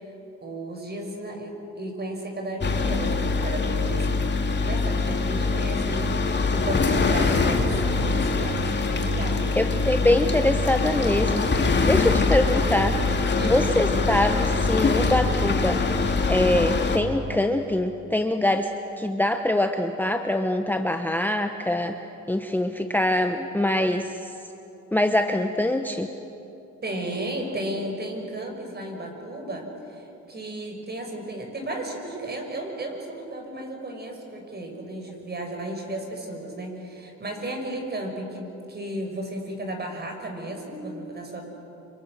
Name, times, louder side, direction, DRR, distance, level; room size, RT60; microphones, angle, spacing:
voice 1, 0.4-4.2 4.6-8.6 8.9-9.4 13.4-13.6 26.8-41.5, right 1 dB, 35° right, 3 dB, 6.1 m, -34 dB
sound 1, 2.6-17.0, left 3 dB, 35° left, 2.4 m, -23 dB
voice 2, 9.6-11.5 11.9-13.0 13.4-15.8 16.3-18.7 19.0-22.0 22.3-24.3 24.9-26.1, left 1 dB, 5° left, 6 dB, 1.0 m, -24 dB
28.5 x 26.5 x 6.6 m, 2.9 s
cardioid pair, 90°, 30 cm